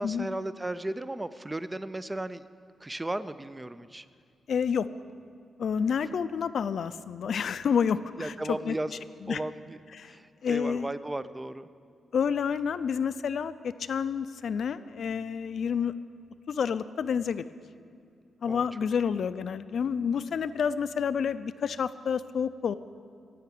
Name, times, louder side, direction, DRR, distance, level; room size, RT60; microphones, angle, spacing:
voice 1, 0.0-2.5 2.8-4.1 8.2-8.9 9.3-9.8 10.0-11.7 18.5-18.7, right 1 dB, 15° right, 14 dB, 0.4 m, -35 dB
voice 2, 4.5-4.9 5.6-8.3 8.7-8.8 9.3-9.4 10.0-10.1 10.4-10.9 12.1-13.5 13.9-15.9 16.5-17.4 18.4-22.8, left 7 dB, 65° left, 13 dB, 0.4 m, -29 dB
16.5 x 5.8 x 9.1 m, 2.3 s
cardioid pair, 115°, 0 cm